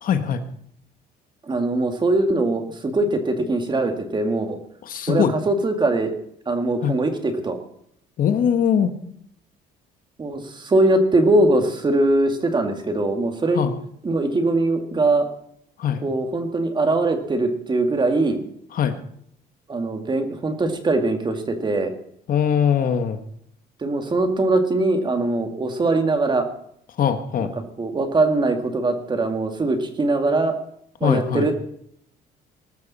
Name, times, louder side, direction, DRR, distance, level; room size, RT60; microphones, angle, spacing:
voice 1, 0.0-0.4 4.8-5.3 6.8-6.9 8.2-8.9 13.5-13.8 15.8-16.0 18.7-19.0 22.3-23.2 27.0-27.5 31.0-31.5, left 8 dB, 55° left, 8 dB, 1.4 m, -21 dB
voice 2, 1.5-4.6 5.1-6.1 6.5-7.6 10.2-13.7 14.0-15.3 16.0-18.4 19.7-21.9 23.8-26.5 27.4-27.5 27.8-30.6 31.0-31.6, right 2 dB, 25° right, 6 dB, 2.2 m, -21 dB
20.0 x 12.5 x 4.2 m, 0.69 s
cardioid pair, 110°, 17 cm